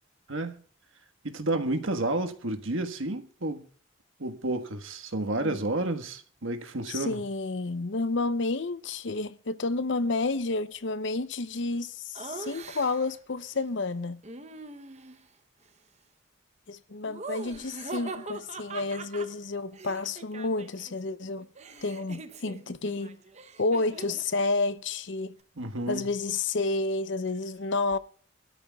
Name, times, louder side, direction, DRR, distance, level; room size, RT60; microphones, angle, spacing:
voice 1, 0.3-0.6 1.2-3.7 4.2-7.2 25.6-26.1, right 2 dB, 75° right, 1.5 m, -31 dB
voice 2, 6.9-14.2 16.7-21.5 21.8-23.2 23.6-25.3 25.9-28.0, left 3 dB, 60° left, 0.7 m, -30 dB
Laughter, 12.1-13.2 14.2-15.3 17.0-20.9 21.2-24.3, right 3 dB, 35° right, 0.9 m, -42 dB
25.0 x 13.0 x 2.4 m
head